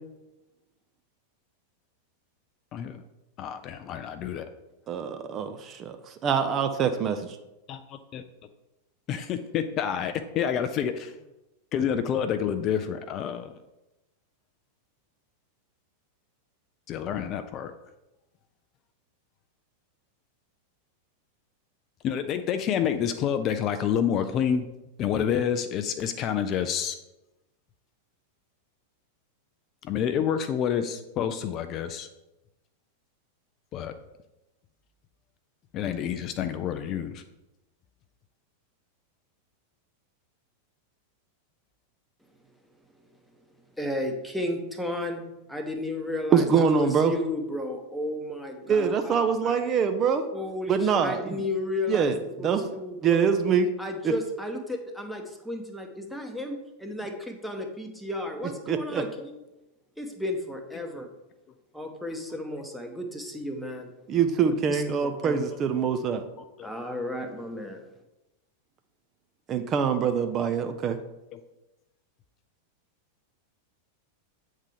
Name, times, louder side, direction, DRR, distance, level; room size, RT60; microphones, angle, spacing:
voice 1, 2.7-3.0 3.4-4.5 7.7-8.2 9.1-11.1 11.7-13.5 16.9-17.7 22.0-24.7 25.0-27.0 29.8-32.1 33.7-33.9 35.7-37.2 66.6-66.7 71.3-71.4, left 8 dB, 35° left, 9 dB, 0.3 m, -28 dB
voice 2, 4.9-7.4 46.3-47.1 48.7-50.3 50.7-51.4 51.9-52.6 53.0-53.7 54.0-54.1 58.7-59.0 64.1-66.2 69.5-71.0, right 6 dB, 30° right, 7 dB, 0.4 m, -24 dB
voice 3, 43.8-49.2 49.4-49.5 50.3-52.1 52.4-53.4 53.8-59.4 60.0-61.1 61.7-63.9 64.5-65.4 66.6-67.9, left 1 dB, ahead, 4 dB, 0.8 m, -33 dB
8.2 x 3.7 x 3.3 m, 0.97 s
figure-of-eight pair, 90°, 0 cm